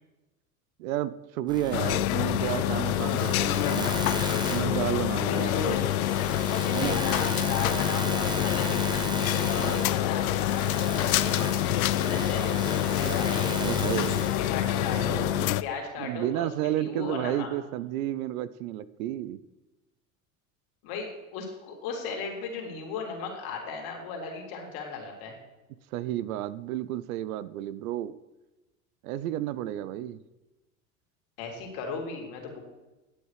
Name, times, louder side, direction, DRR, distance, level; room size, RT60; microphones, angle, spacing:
voice 1, 0.8-3.9 4.5-5.8 6.7-7.0 9.6-9.9 13.5-14.4 16.0-19.4 25.9-28.2 29.0-30.2, right 13 dB, 80° right, 17 dB, 0.7 m, -31 dB
sound 1, 1.5-15.5, right 1 dB, 10° right, 1.4 m, -35 dB
sound 2, 1.7-15.6, left 14 dB, 90° left, 0.5 m, -27 dB
voice 2, 5.2-5.9 6.9-9.1 9.7-13.5 14.4-15.3 15.6-17.5 20.8-25.3 31.4-32.6, left 4 dB, 60° left, 1 dB, 3.0 m, -36 dB
10.0 x 8.3 x 4.9 m, 1.1 s
supercardioid pair, 95°, 41 cm